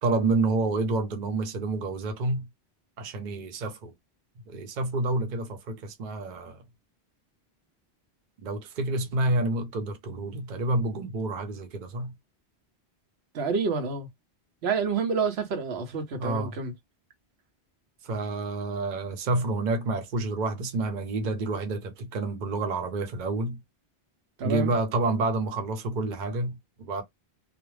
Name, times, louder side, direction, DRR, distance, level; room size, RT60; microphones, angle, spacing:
voice 1, 0.0-2.5 3.0-3.9 4.5-6.6 8.4-12.1 16.2-16.5 18.0-23.6 24.4-27.0, right 2 dB, 50° right, 0.7 m, -29 dB
voice 2, 13.3-14.1 14.6-16.7 24.4-24.7, right 5 dB, 80° right, 1.0 m, -28 dB
2.4 x 2.0 x 3.1 m
omnidirectional pair, 1.1 m